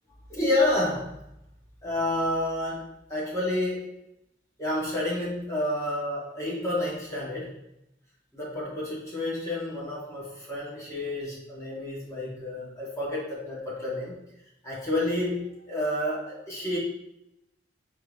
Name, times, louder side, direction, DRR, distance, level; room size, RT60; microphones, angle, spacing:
voice 1, 0.3-1.1 1.8-3.9 4.6-7.6 8.3-14.1 14.6-16.8, left 1 dB, 15° left, -6 dB, 1.3 m, -29 dB
4.5 x 2.7 x 3.3 m, 0.84 s
head